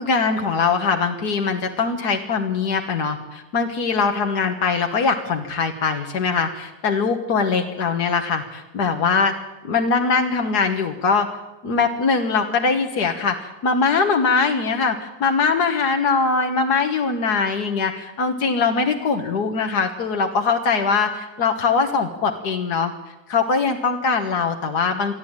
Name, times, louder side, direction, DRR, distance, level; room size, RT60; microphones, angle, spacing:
voice 1, 0.0-9.3 9.6-11.3 11.6-22.9 23.3-25.2, left 5 dB, 90° left, 4 dB, 2.0 m, -21 dB
22.5 x 13.5 x 8.9 m, 1.0 s
omnidirectional pair, 1.6 m